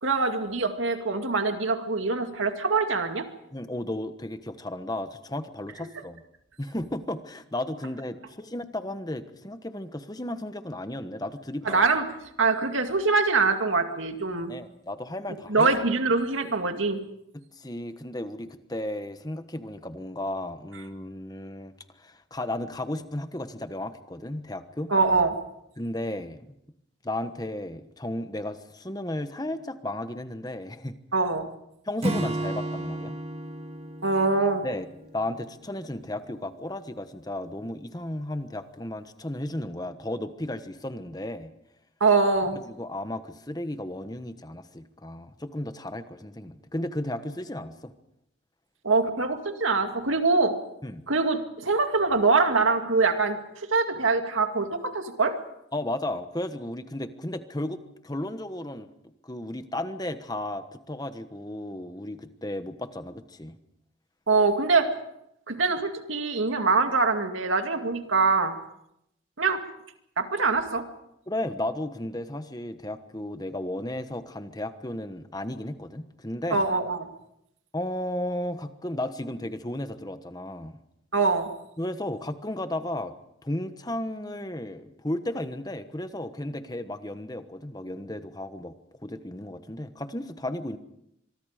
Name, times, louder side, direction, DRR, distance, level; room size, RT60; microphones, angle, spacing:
voice 1, 0.0-3.3 11.7-12.1 12.4-14.5 15.5-17.0 24.9-25.4 31.1-31.5 34.0-34.6 42.0-42.6 48.8-50.5 51.1-53.4 53.7-55.3 64.3-64.9 65.5-68.5 69.4-69.6 70.2-70.8 76.5-77.1 81.1-81.5, right 4 dB, 85° right, 6 dB, 2.2 m, -24 dB
voice 2, 3.5-6.2 6.6-11.8 14.5-15.7 17.3-24.9 25.8-26.5 27.0-31.0 31.8-33.2 34.6-34.8 35.1-41.5 42.5-47.9 50.8-51.0 55.7-58.9 59.2-63.6 71.3-76.6 77.7-80.8 81.8-83.1 83.4-88.7 89.0-90.8, left 1 dB, 20° left, 10 dB, 1.2 m, -34 dB
Acoustic guitar / Strum, 32.0-35.5, right 1 dB, 30° right, 1.8 m, -33 dB
25.0 x 23.0 x 5.1 m, 0.79 s
head